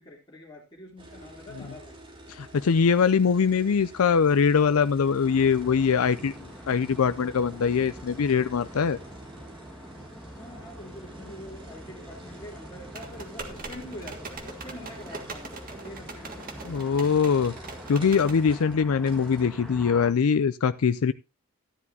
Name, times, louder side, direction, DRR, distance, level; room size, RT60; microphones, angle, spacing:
voice 1, 0.0-2.0 10.3-16.7, left 1 dB, 20° left, -5 dB, 3.2 m, -45 dB
sound 1, 1.0-19.4, right 1 dB, 25° right, 3.4 m, -48 dB
voice 2, 2.3-6.3 6.7-9.0 16.7-17.5 17.9-21.1, left 6 dB, 85° left, 12 dB, 0.5 m, -22 dB
sound 2, 5.2-20.1, equal, ahead, 1.9 m, -45 dB
sound 3, 12.9-18.4, right 3 dB, 40° right, 1.6 m, -42 dB
13.0 x 11.0 x 2.8 m, 0.27 s
head